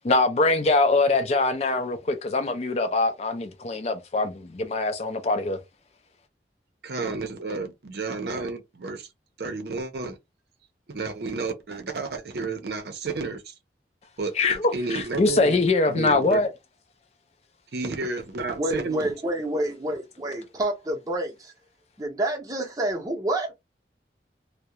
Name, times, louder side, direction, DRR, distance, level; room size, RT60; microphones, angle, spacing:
voice 1, 0.0-5.6 14.4-16.5, left 3 dB, 35° left, 0.4 m, -23 dB
voice 2, 6.8-9.1 9.4-10.2 10.9-13.5 14.2-16.4 17.7-19.1, right 3 dB, 65° right, 0.6 m, -31 dB
voice 3, 18.6-21.5 22.0-23.5, right 1 dB, 20° right, 0.6 m, -28 dB
2.3 x 2.0 x 2.8 m
head